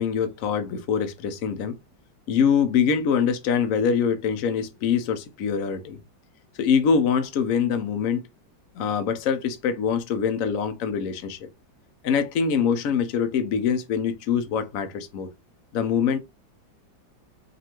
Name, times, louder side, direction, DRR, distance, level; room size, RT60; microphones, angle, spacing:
voice 1, 0.0-1.7 2.3-6.0 6.6-8.2 8.8-11.5 12.0-15.3 15.7-16.2, left 6 dB, 60° left, 0.9 m, -24 dB
5.3 x 2.6 x 2.9 m
omnidirectional pair, 2.1 m